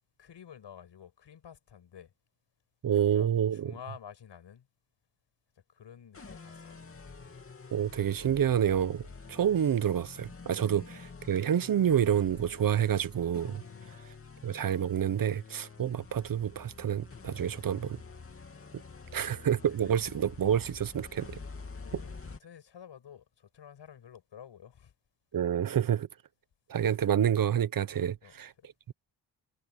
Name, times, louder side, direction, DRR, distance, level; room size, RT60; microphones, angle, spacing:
voice 1, 0.2-2.1 2.9-4.7 5.6-7.0 10.6-10.7 13.5-14.0 19.0-19.3 19.6-20.1 21.7-24.9 26.8-27.0 28.2-28.7, left 8 dB, 80° left, 7.1 m, -51 dB
voice 2, 2.8-3.7 7.7-13.6 14.4-18.0 19.1-21.4 21.9-22.0 25.3-26.1 26.7-28.5, right 9 dB, 55° right, 0.7 m, -28 dB
sound 1, 6.1-22.4, left 4 dB, 30° left, 2.8 m, -48 dB
wide cardioid pair, 120°, 42 cm